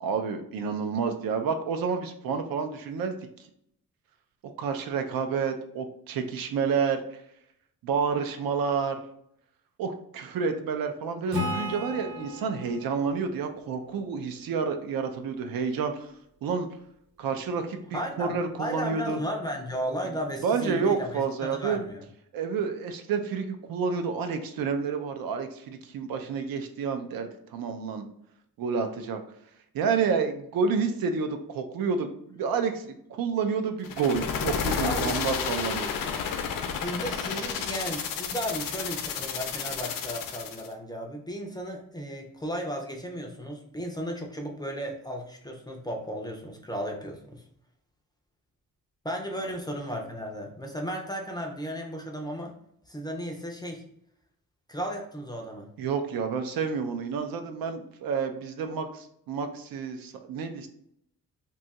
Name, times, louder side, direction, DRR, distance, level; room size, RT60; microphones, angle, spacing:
voice 1, 0.0-3.2 4.4-7.0 7.8-9.0 9.8-16.1 16.4-16.7 17.2-19.2 20.4-21.8 22.3-28.1 28.6-29.2 29.7-35.9 55.8-60.7, right 5 dB, 85° right, 6 dB, 0.5 m, -29 dB
Acoustic guitar / Strum, 11.3-14.8, left 1 dB, 40° right, 0.9 m, -36 dB
voice 2, 17.9-22.0 34.8-35.2 36.8-47.4 49.0-52.6 52.9-53.8 54.7-55.7, equal, 15° left, 1 dB, 0.3 m, -35 dB
sound 1, 33.8-40.7, left 6 dB, 75° left, 0.5 m, -31 dB
2.7 x 2.3 x 4.0 m, 0.71 s
wide cardioid pair, 160°, 34 cm